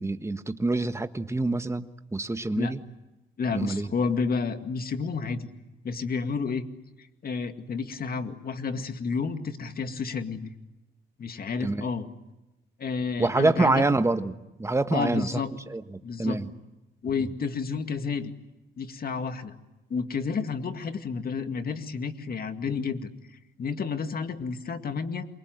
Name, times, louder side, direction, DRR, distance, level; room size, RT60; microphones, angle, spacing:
voice 1, 0.0-2.8 3.5-3.9 11.6-11.8 13.2-15.3 15.7-16.5, right 2 dB, 15° right, 1.4 m, -26 dB
voice 2, 3.4-5.5 5.8-6.7 7.2-10.5 11.2-12.1 12.8-13.8 14.9-15.5 16.0-16.4 17.0-18.3 18.8-19.6 19.9-23.1 23.6-25.3, left 5 dB, 50° left, 2.2 m, -30 dB
28.0 x 23.5 x 7.9 m
cardioid pair, 90°, 20 cm